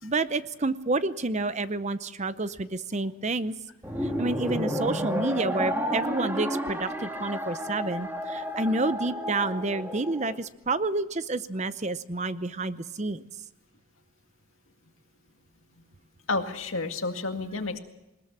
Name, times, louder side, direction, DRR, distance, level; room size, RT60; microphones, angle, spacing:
voice 1, 0.0-3.5 4.0-13.3, right 2 dB, 35° right, 14 dB, 0.7 m, -29 dB
sound 1, 3.8-10.4, equal, 10° right, 2.4 m, -31 dB
voice 2, 16.3-17.8, left 3 dB, 75° left, 6 dB, 2.0 m, -30 dB
21.0 x 20.5 x 7.3 m, 0.94 s
head